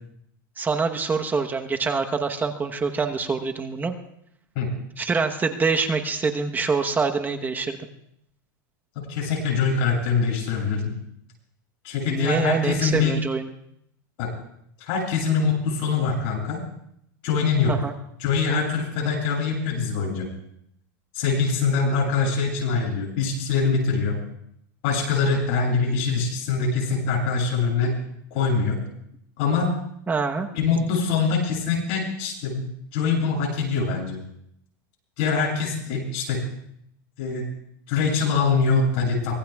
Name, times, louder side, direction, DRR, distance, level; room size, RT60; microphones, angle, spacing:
voice 1, 0.6-4.0 5.0-7.8 12.1-13.5 17.7-17.9 30.1-30.5, right 4 dB, 15° right, 5 dB, 1.1 m, -25 dB
voice 2, 9.0-10.9 11.8-13.1 14.2-14.3 14.8-16.6 17.2-17.7 18.2-20.3 21.1-24.2 24.8-28.0 28.3-28.8 29.4-29.7 30.5-32.6 32.9-34.2 35.2-36.4 37.2-37.5 37.9-39.3, left 5 dB, 55° left, -1 dB, 7.5 m, -23 dB
24.5 x 19.0 x 2.4 m, 0.73 s
supercardioid pair, 130°, 11 cm